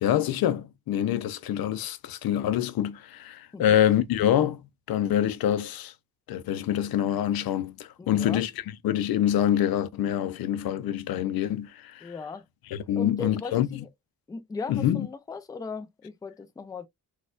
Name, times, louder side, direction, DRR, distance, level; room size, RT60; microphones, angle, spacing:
voice 1, 0.0-4.6 4.9-5.9 6.3-8.5 8.8-12.1 12.7-13.7 14.7-15.1, left 11 dB, 90° left, 0.5 m, -26 dB
voice 2, 8.0-8.4 12.0-12.4 13.0-13.9 14.3-16.9, left 4 dB, 10° left, 0.3 m, -38 dB
4.2 x 2.3 x 2.3 m
wide cardioid pair, 180°, 35 cm